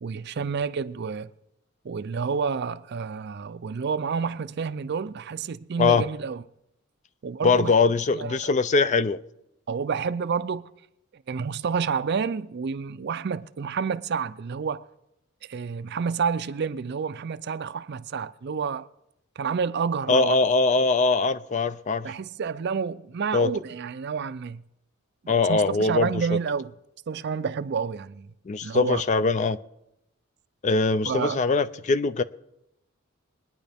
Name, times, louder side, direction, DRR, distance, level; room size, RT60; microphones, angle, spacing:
voice 1, 0.0-1.3 1.8-6.4 7.2-7.7 8.1-8.4 9.7-10.7 11.3-14.8 15.5-18.9 19.4-20.4 22.0-24.6 25.2-26.7 27.1-28.3 28.6-29.0 31.1-31.4, right 6 dB, 50° right, 0.4 m, -29 dB
voice 2, 7.4-9.2 20.1-22.1 23.3-23.5 25.3-26.4 28.5-29.6 30.6-32.2, left 4 dB, 35° left, 0.4 m, -22 dB
22.0 x 9.9 x 3.5 m
head